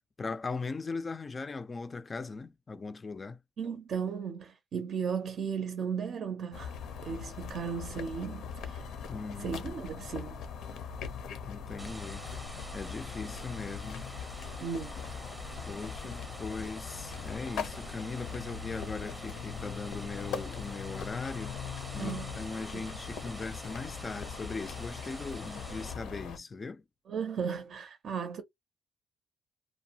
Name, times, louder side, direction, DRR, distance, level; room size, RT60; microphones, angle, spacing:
voice 1, 0.2-3.4 9.1-9.6 11.4-12.2 12.7-14.1 14.4-14.6 15.6-21.6 21.9-26.8, left 4 dB, 30° left, 0.3 m, -39 dB
voice 2, 3.6-6.7 7.0-8.9 9.4-10.5 14.6-15.2 22.0-22.5 22.7-22.8 27.1-28.4, right 6 dB, 60° right, 0.5 m, -36 dB
sound 1, 6.5-26.4, left 6 dB, 80° left, 0.6 m, -41 dB
sound 2, 11.8-25.9, right 1 dB, 15° right, 0.7 m, -47 dB
2.6 x 2.1 x 2.7 m
cardioid pair, 90°, 0 cm